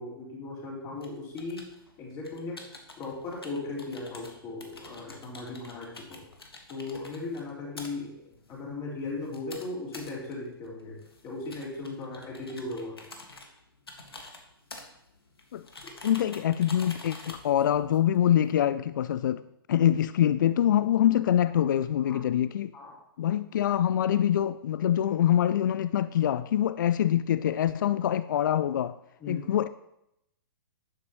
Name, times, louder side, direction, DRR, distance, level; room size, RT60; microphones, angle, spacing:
voice 1, 0.0-1.7 2.0-2.7 3.0-6.2 6.7-13.0 15.8-15.9 22.1-22.2 22.7-23.0 29.2-29.4, left 3 dB, 25° left, 4.2 m, -37 dB
sound 1, 1.0-18.5, left 2 dB, 75° left, 1.7 m, -49 dB
voice 2, 16.0-19.4 19.7-22.7 23.2-29.0 29.3-29.7, left 10 dB, 55° left, 0.4 m, -25 dB
11.5 x 9.8 x 3.1 m
figure-of-eight pair, 115°, 13 cm